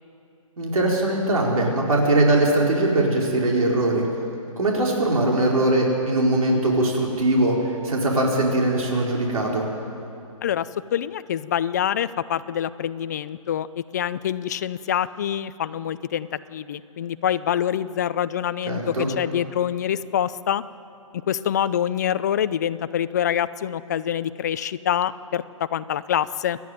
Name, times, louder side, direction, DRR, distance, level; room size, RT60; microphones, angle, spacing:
voice 1, 0.6-4.1 4.6-9.7 18.7-19.1, right 2 dB, 80° right, -2 dB, 4.4 m, -21 dB
voice 2, 10.4-20.6 21.3-26.6, left 10 dB, 30° left, 15 dB, 0.5 m, -26 dB
28.0 x 10.5 x 9.3 m, 2.8 s
hypercardioid pair, 160°, 18 cm